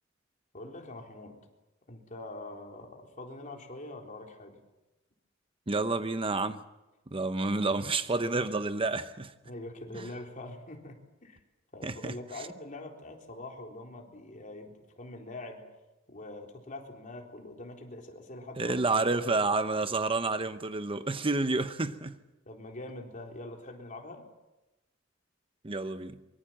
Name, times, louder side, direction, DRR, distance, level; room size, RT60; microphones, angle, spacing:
voice 1, 0.5-1.4 1.9-4.6 9.4-11.4 11.7-15.6 16.1-18.8 19.1-19.4 22.5-24.3, left 2 dB, 40° left, 3.9 m, -44 dB
voice 2, 5.7-6.6 7.1-9.3 9.9-10.1 11.8-12.4 18.6-22.2 25.6-26.2, right 3 dB, 25° right, 0.8 m, -29 dB
24.0 x 24.0 x 7.4 m
head